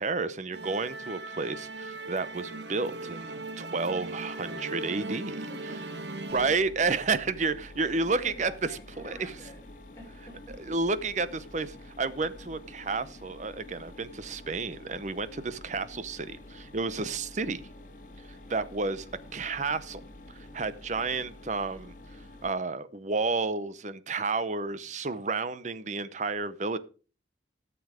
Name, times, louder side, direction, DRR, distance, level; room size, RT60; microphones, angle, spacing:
voice 1, 0.0-5.5 6.3-9.4 10.6-17.6 18.5-20.0 20.3-21.9 22.4-26.8, right 4 dB, 40° right, 0.7 m, -31 dB
Musical instrument, 0.5-6.6, right 2 dB, 75° right, 1.2 m, -38 dB
voice 2, 5.5-6.4 7.8-9.6 9.9-10.7 15.9-16.1 19.1-19.3, equal, 15° left, 5.2 m, -49 dB
Mechanisms, 6.3-22.5, left 1 dB, 45° left, 1.7 m, -48 dB
13.0 x 7.0 x 4.9 m
head